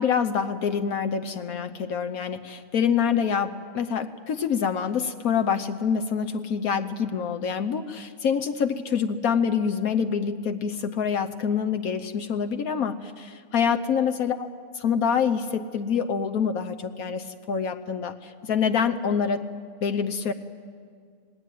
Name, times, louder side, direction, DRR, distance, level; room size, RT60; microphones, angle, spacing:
voice 1, 0.0-14.5 14.7-19.4 19.8-20.3, left 7 dB, 75° left, 8 dB, 1.3 m, -26 dB
27.0 x 19.0 x 9.3 m, 2.1 s
omnidirectional pair, 1.5 m